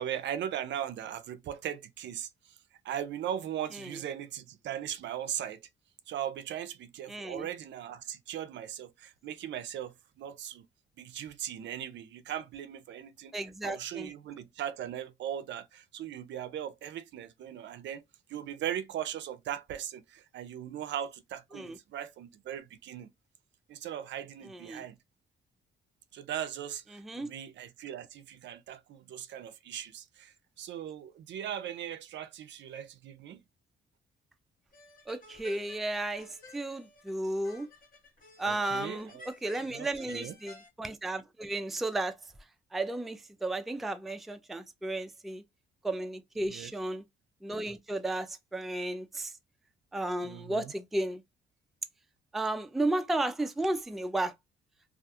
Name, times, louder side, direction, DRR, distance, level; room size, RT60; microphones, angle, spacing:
voice 1, 0.0-2.3 2.8-5.6 6.1-10.6 11.0-13.3 13.6-18.0 18.3-23.1 23.7-25.0 26.1-33.4 38.4-39.3 39.7-40.4 46.4-46.7 50.2-50.7, right 10 dB, 65° right, 0.4 m, -39 dB
voice 2, 7.1-7.5 13.3-14.1 21.5-21.8 24.5-24.8 26.9-27.3 35.1-36.3 36.5-37.7 38.4-39.1 39.4-42.1 42.7-45.4 45.8-47.0 47.4-49.3 49.9-51.2 52.3-54.3, right 2 dB, ahead, 0.3 m, -33 dB
sound 1, 34.7-40.7, left 2 dB, 45° left, 1.0 m, -53 dB
2.4 x 2.3 x 2.7 m
cardioid pair, 90°, 20 cm